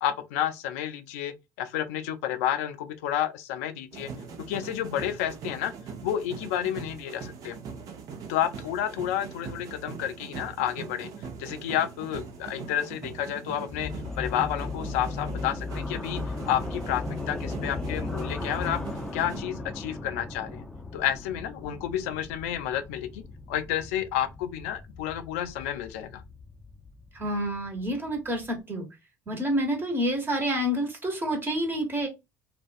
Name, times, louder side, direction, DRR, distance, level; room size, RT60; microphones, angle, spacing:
voice 1, 0.0-4.1 4.5-5.7 6.0-7.6 8.3-11.1 11.4-13.9 14.2-18.8 19.1-20.6 20.9-23.2 23.5-26.2, left 11 dB, 75° left, 0.4 m, -30 dB
sound 1, 3.9-19.4, right 5 dB, 50° right, 0.7 m, -41 dB
sound 2, 13.7-28.6, left 3 dB, 10° left, 0.6 m, -37 dB
voice 2, 27.1-28.9 29.3-32.1, equal, 25° right, 1.2 m, -28 dB
2.5 x 2.2 x 2.5 m
hypercardioid pair, 60°, 8 cm